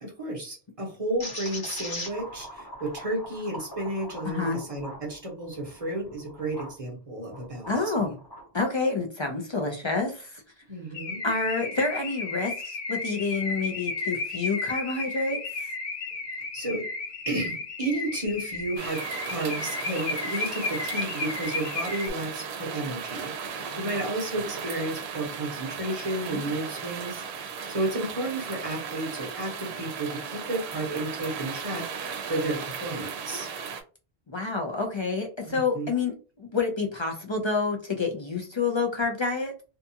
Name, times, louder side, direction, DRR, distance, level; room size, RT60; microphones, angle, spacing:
voice 1, 0.0-7.9 10.7-11.2 16.5-16.9 17.3-33.5 35.5-35.9, right 1 dB, 35° right, 0 dB, 0.8 m, -32 dB
sound 1, 1.2-6.8 7.3-8.5, left 1 dB, 25° left, 0.7 m, -40 dB
voice 2, 4.2-4.7 7.7-8.2 8.5-10.4 11.2-15.7 23.6-24.0 26.3-26.5 34.3-39.5, left 4 dB, 45° left, 2 dB, 0.3 m, -28 dB
Car / Alarm, 10.9-22.1, left 3 dB, 80° left, 1.1 m, -33 dB
sound 2, 18.8-33.8, right 6 dB, 85° right, 0.8 m, -36 dB
2.6 x 2.3 x 2.7 m, 0.35 s
omnidirectional pair, 1.1 m